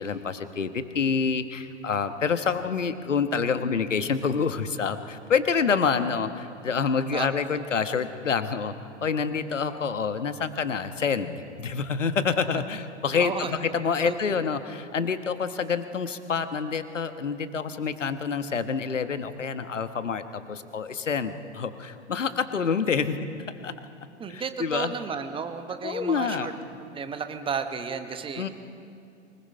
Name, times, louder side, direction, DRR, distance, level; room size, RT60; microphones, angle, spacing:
voice 1, 0.0-8.7 9.0-23.3 23.6-23.7 24.3-24.9 25.8-26.5 28.4-28.5, left 6 dB, 75° left, 11 dB, 1.3 m, -27 dB
voice 2, 13.2-13.5 14.0-14.4 24.2-26.5 26.8-28.5, right 6 dB, 15° right, 8 dB, 1.2 m, -33 dB
24.5 x 20.5 x 5.5 m, 2.5 s
figure-of-eight pair, 100°, 37 cm